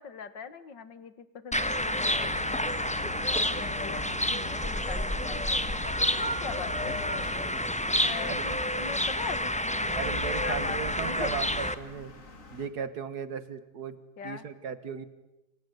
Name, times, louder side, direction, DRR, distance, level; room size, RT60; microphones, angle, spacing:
voice 1, 0.0-4.0 4.3-7.5 7.8-11.5 14.2-14.4, left 6 dB, 75° left, 13 dB, 2.3 m, -42 dB
sound 1, 1.5-11.7, left 1 dB, 5° left, 0.8 m, -29 dB
sound 2, 2.0-12.7, left 2 dB, 45° left, 2.7 m, -44 dB
voice 2, 10.0-12.1 12.5-15.1, right 6 dB, 60° right, 13 dB, 2.1 m, -36 dB
27.5 x 25.5 x 8.3 m, 0.94 s
omnidirectional pair, 2.0 m